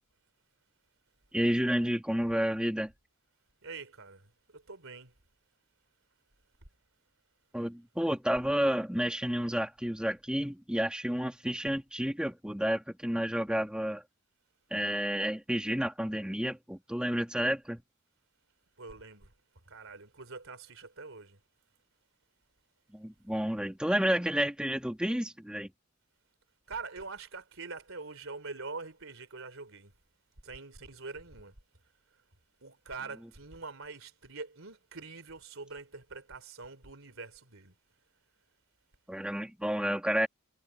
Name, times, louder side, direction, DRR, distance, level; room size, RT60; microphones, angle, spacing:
voice 1, 1.3-2.9 7.5-14.0 14.7-17.8 22.9-25.7 39.1-40.3, equal, 5° right, 2.3 m, -30 dB
voice 2, 3.6-5.1 18.8-19.3 19.7-21.4 26.7-29.9 30.4-31.5 32.6-37.7, right 4 dB, 70° right, 3.6 m, -44 dB
head